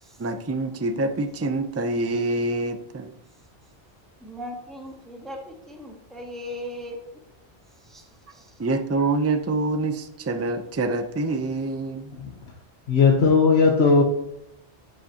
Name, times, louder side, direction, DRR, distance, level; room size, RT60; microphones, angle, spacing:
voice 1, 0.2-3.1 8.6-12.1, right 2 dB, 20° right, 8 dB, 0.5 m, -26 dB
voice 2, 4.2-7.2 7.8-8.6, left 1 dB, ahead, 0 dB, 1.5 m, -39 dB
voice 3, 12.9-14.0, left 5 dB, 75° left, 1 dB, 1.3 m, -17 dB
15.5 x 6.1 x 2.9 m, 0.83 s
omnidirectional pair, 1.1 m